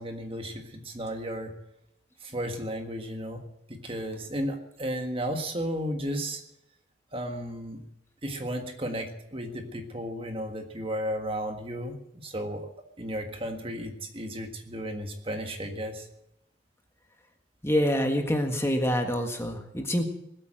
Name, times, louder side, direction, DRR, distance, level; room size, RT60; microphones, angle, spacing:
voice 1, 0.0-1.5 2.2-3.4 3.7-6.4 7.1-7.8 8.2-12.7 13.0-16.1, equal, 30° right, 5 dB, 1.6 m, -34 dB
voice 2, 17.6-20.1, equal, 15° left, 4 dB, 1.6 m, -26 dB
20.0 x 8.7 x 7.6 m, 0.83 s
head